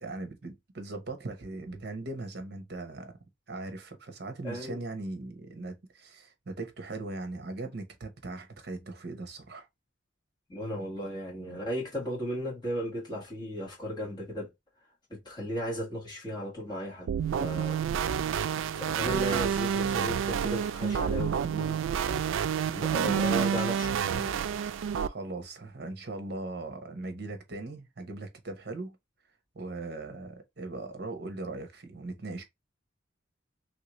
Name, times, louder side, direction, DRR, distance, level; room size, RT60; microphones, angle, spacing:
voice 1, 0.0-3.2 3.5-9.7 22.8-23.1 25.0-29.0 29.5-32.4, right 2 dB, 55° right, 0.9 m, -39 dB
voice 2, 4.4-4.8 10.5-14.5 15.1-17.1 17.4-17.8 18.8-21.8 22.7-24.4, equal, 20° left, 1.8 m, -35 dB
sound 1, 17.1-25.1, right 7 dB, 75° right, 0.3 m, -29 dB
3.2 x 2.7 x 3.0 m
head